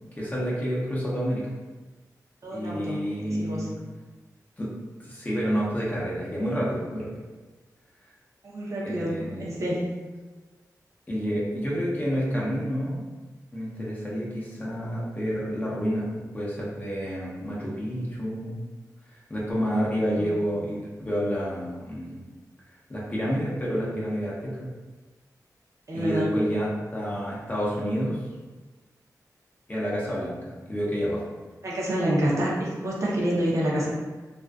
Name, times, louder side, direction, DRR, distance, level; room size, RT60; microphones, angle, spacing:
voice 1, 0.2-1.5 2.5-3.7 4.6-4.7 5.0-7.1 8.8-9.4 11.1-13.0 13.5-18.6 19.3-22.2 22.9-24.7 25.9-28.2 29.7-31.2, equal, 25° left, -6 dB, 0.7 m, -29 dB
voice 2, 2.4-3.7 8.5-9.9 20.1-20.3 25.9-26.4 31.6-33.9, right 1 dB, 50° right, -6 dB, 0.7 m, -28 dB
2.5 x 2.3 x 2.3 m, 1.3 s
wide cardioid pair, 90°, 7 cm